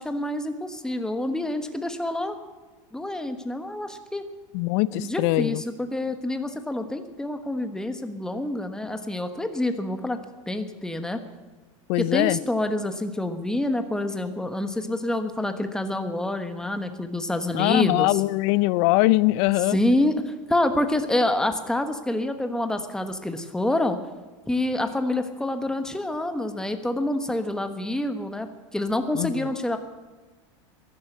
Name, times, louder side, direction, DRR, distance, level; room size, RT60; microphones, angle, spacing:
voice 1, 0.0-2.4 2.9-4.2 4.9-10.2 10.5-11.2 12.0-18.2 19.7-24.0 24.5-28.5 28.7-29.8, left 1 dB, 5° left, 7 dB, 1.3 m, -27 dB
voice 2, 4.5-5.6 11.9-12.4 17.5-19.8 29.1-29.5, left 19 dB, 60° left, 21 dB, 0.5 m, -22 dB
15.0 x 11.5 x 8.0 m, 1.3 s
supercardioid pair, 120°, 17 cm